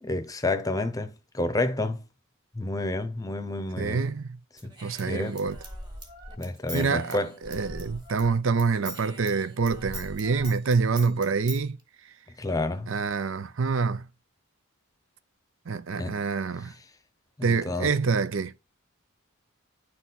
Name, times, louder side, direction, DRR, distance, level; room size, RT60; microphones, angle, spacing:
voice 1, 0.0-2.0 2.6-4.1 4.6-4.7 5.1-5.4 6.4-7.4 12.4-12.9 16.0-16.2 17.4-17.9, left 2 dB, 15° left, 0.8 m, -29 dB
voice 2, 3.8-4.4 4.8-5.6 6.7-11.8 12.9-14.1 15.7-16.7 17.4-18.6, right 4 dB, 60° right, 0.5 m, -26 dB
Human voice / Scissors, 4.6-8.3 8.6-11.6, right 1 dB, 20° right, 1.5 m, -42 dB
10.0 x 4.2 x 4.1 m
head